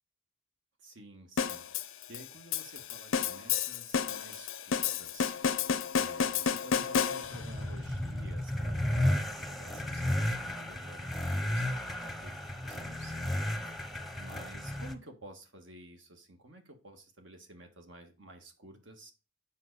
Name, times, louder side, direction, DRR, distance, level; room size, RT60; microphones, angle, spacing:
voice 1, 0.8-19.1, right 2 dB, 65° right, 5 dB, 1.7 m, -52 dB
sound 1, 1.4-7.6, left 7 dB, 90° left, 0.6 m, -31 dB
sound 2, 7.1-14.9, left 1 dB, ahead, 0.8 m, -33 dB
7.5 x 5.8 x 4.0 m, 0.32 s
head